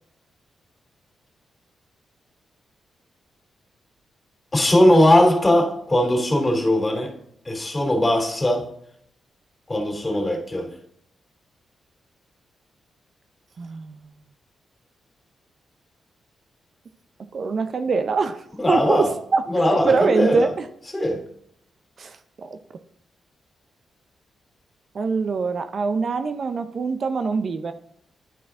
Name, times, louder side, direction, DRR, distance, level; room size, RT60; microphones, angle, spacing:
voice 1, 4.5-7.1 7.4-8.7 9.7-10.7 18.5-19.1 19.5-20.5 20.9-21.2, left 1 dB, 25° left, 3 dB, 2.8 m, -19 dB
voice 2, 13.6-14.1 17.3-18.4 18.7-20.7 22.0-22.6 24.9-27.7, right 4 dB, 60° right, 9 dB, 0.6 m, -24 dB
11.0 x 4.6 x 3.6 m, 0.69 s
cardioid pair, 60°, 0 cm